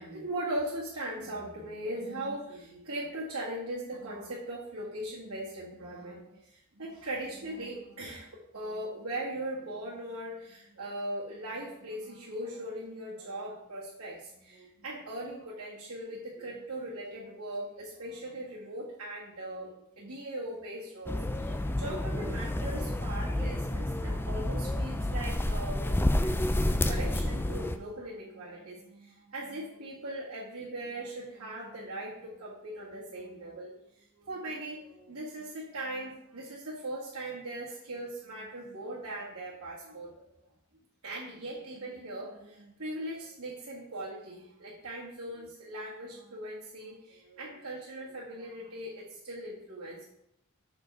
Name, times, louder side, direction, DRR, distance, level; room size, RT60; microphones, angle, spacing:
voice 1, 0.0-25.8 26.2-26.4 26.6-40.2 41.0-50.0, right 1 dB, 70° right, -8 dB, 2.0 m, -39 dB
sound 1, 21.1-27.8, left 1 dB, 10° left, 0.4 m, -30 dB
6.7 x 4.9 x 4.6 m, 0.76 s
head